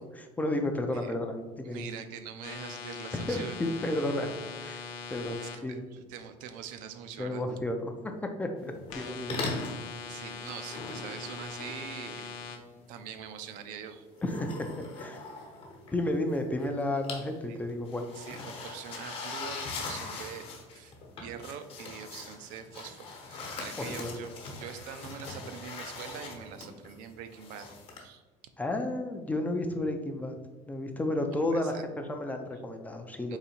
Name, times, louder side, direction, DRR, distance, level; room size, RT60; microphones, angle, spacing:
voice 1, 0.1-1.9 3.1-4.3 4.6-4.8 5.1-5.8 7.2-8.1 8.4-9.4 14.2-15.2 15.9-18.1 23.8-24.3 28.6-30.4 30.7-33.4, left 1 dB, 10° left, 4 dB, 0.4 m, -32 dB
voice 2, 1.6-3.5 5.4-7.4 10.1-14.1 17.5-17.6 18.2-20.5 20.7-20.9 21.2-27.7 28.0-28.2 31.5-31.8 33.3-33.4, right 8 dB, 75° right, 8 dB, 0.5 m, -44 dB
sound 1, 2.4-5.6 8.9-12.6, left 5 dB, 65° left, 0.7 m, -41 dB
sound 2, 8.7-9.0 9.3-9.8 10.7-12.4 14.1-16.3 16.6-17.3 17.6-28.0, left 3 dB, 45° left, 1.0 m, -41 dB
3.9 x 2.7 x 4.2 m, 1.3 s
cardioid pair, 140°, 14 cm